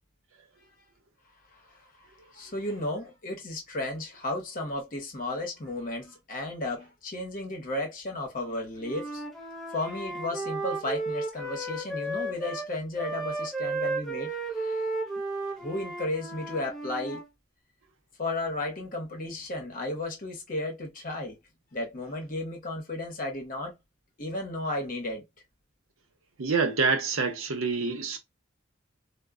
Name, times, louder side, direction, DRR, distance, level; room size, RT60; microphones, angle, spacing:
voice 1, 2.3-9.2 9.7-14.8 15.6-17.2 18.2-21.4 21.7-23.7 24.2-25.2, left 2 dB, 40° left, 0.8 m, -34 dB
Wind instrument woodwind instrument, 8.8-12.7 12.9-17.3, right 2 dB, ahead, 0.4 m, -34 dB
voice 2, 26.4-28.2, right 4 dB, 90° right, 0.7 m, -26 dB
2.0 x 2.0 x 3.5 m
head